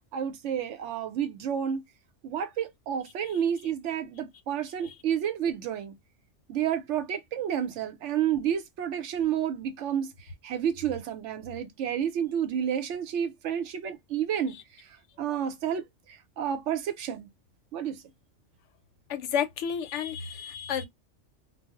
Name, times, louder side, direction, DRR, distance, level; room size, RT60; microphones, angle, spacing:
voice 1, 0.1-1.8 2.2-6.0 6.5-14.9 15.2-17.3 17.7-18.0, right 9 dB, 85° right, 0.9 m, -30 dB
voice 2, 19.1-20.9, left 8 dB, 80° left, 0.9 m, -31 dB
2.3 x 2.0 x 3.5 m
omnidirectional pair, 1.2 m